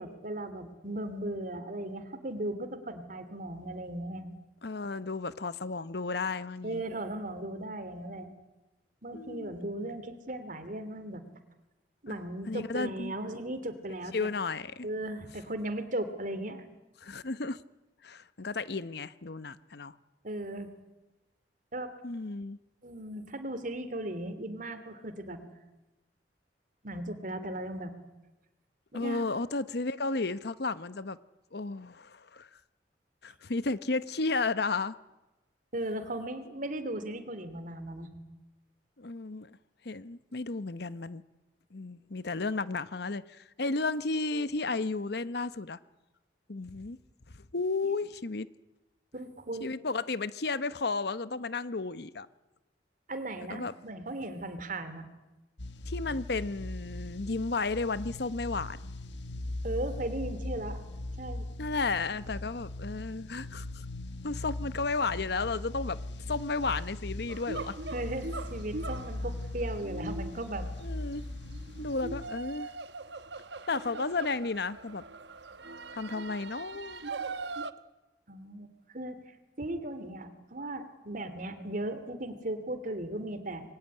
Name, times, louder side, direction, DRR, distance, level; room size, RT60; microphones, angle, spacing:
voice 1, 0.0-4.3 6.6-8.3 9.0-11.2 12.0-14.3 14.8-16.6 20.2-20.7 21.7-21.9 22.8-25.4 26.8-27.9 28.9-29.2 35.7-38.1 49.1-49.7 53.1-55.1 59.6-60.8 61.2-61.5 67.9-70.7 78.3-78.7 78.9-79.2 79.6-83.6, right 1 dB, 50° right, 10 dB, 3.1 m, -37 dB
voice 2, 4.6-6.8 9.1-9.5 12.1-12.2 12.5-13.1 14.1-14.9 17.0-17.6 18.0-19.9 22.0-22.6 28.9-31.2 31.5-32.5 33.2-34.9 39.0-39.6 39.8-41.2 41.7-45.8 46.5-47.0 47.5-48.5 49.6-52.3 53.5-53.7 55.9-58.9 61.6-63.8 64.2-66.0 66.3-67.7 70.8-71.2 71.8-72.7 73.7-75.0 75.9-77.0, left 3 dB, 65° left, 15 dB, 0.9 m, -33 dB
sound 1, 55.6-72.3, left 1 dB, 90° left, 1.7 m, -39 dB
sound 2, 67.3-77.7, right 3 dB, 75° right, 1.1 m, -41 dB
26.5 x 22.5 x 9.8 m, 1.1 s
head